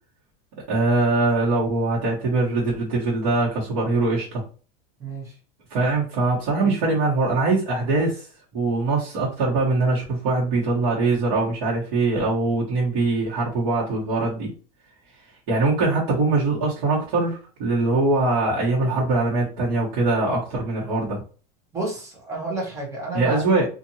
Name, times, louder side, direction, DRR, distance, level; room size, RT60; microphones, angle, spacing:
voice 1, 0.7-4.4 5.7-8.3 8.5-14.5 15.5-21.2 23.1-23.7, right 3 dB, 75° right, -6 dB, 1.2 m, -22 dB
voice 2, 5.0-5.3 6.6-6.7 21.7-23.4, right 2 dB, 15° right, -2 dB, 0.9 m, -30 dB
2.8 x 2.5 x 2.7 m, 0.37 s
cardioid pair, 170°, 19 cm